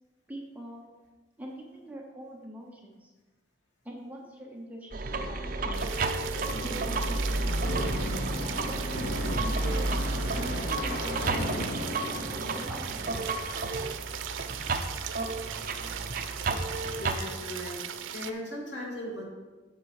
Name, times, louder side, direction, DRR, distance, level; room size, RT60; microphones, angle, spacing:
voice 1, 0.3-0.9 1.4-3.1 3.8-6.0 6.6-7.9 8.6-9.9 10.4-11.9 12.5-13.4, right 1 dB, 10° right, -2 dB, 1.0 m, -44 dB
sound 1, 4.9-17.2, right 3 dB, 45° right, 0.6 m, -32 dB
sound 2, 5.1-13.9, left 1 dB, 60° left, 1.1 m, -36 dB
sound 3, 5.7-18.3, right 9 dB, 90° right, 0.5 m, -39 dB
voice 2, 17.0-17.8 18.1-19.2, left 1 dB, 75° left, -3 dB, 2.5 m, -37 dB
8.0 x 6.9 x 4.8 m, 1.3 s
head